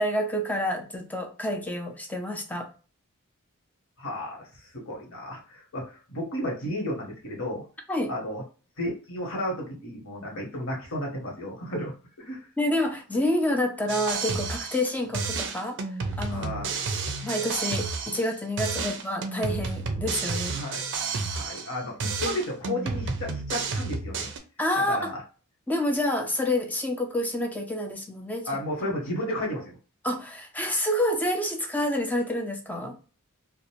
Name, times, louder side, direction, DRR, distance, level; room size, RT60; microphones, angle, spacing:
voice 1, 0.0-2.7 7.9-8.1 12.6-15.8 16.2-16.5 17.2-20.6 24.6-25.1 25.7-28.5 30.0-33.0, left 1 dB, 5° left, 3 dB, 0.4 m, -28 dB
voice 2, 4.0-7.6 8.1-8.4 8.8-11.9 12.3-12.5 16.3-16.7 18.8-18.9 20.5-20.8 21.3-24.3 24.7-25.2 28.4-29.8, left 1 dB, 65° left, -1 dB, 1.1 m, -33 dB
sound 1, 13.9-14.9 15.1-18.3 18.6-21.7 22.0-24.4, right 4 dB, 55° right, 0.4 m, -31 dB
2.5 x 2.0 x 2.9 m, 0.36 s
head